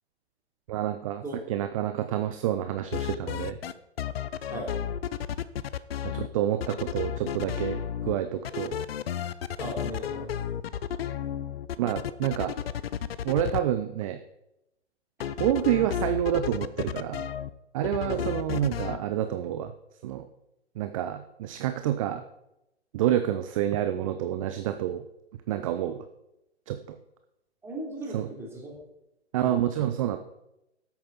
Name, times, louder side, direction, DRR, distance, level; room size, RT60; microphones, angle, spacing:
voice 1, 0.7-1.2 1.5-3.6 6.0-8.8 11.8-12.5 13.2-14.2 15.4-17.3 17.7-19.7 20.0-20.3 20.8-22.2 22.9-25.0 25.5-26.0 26.7-27.0 28.1-28.3 29.3-30.2, right 11 dB, 30° right, 9 dB, 0.6 m, -28 dB
sound 1, 2.8-6.3 6.6-8.2 8.4-13.6 15.2-17.5 17.8-19.0, left 9 dB, 60° left, 0.7 m, -32 dB
voice 2, 9.6-10.3 18.0-18.4 27.6-28.8, right 1 dB, 5° right, -2 dB, 3.0 m, -37 dB
13.0 x 8.6 x 4.0 m, 0.88 s
figure-of-eight pair, 125°, 34 cm